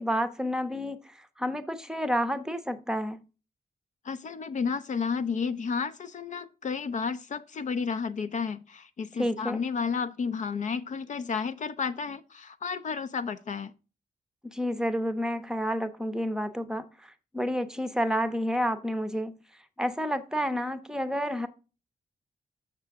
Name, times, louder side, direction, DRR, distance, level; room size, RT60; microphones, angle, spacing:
voice 1, 0.0-3.2 9.2-9.6 14.4-19.4 19.8-21.5, equal, 5° right, 0.7 m, -30 dB
voice 2, 4.0-13.7, left 5 dB, 55° left, 0.5 m, -32 dB
6.8 x 6.7 x 3.5 m
wide cardioid pair, 165°, 15 cm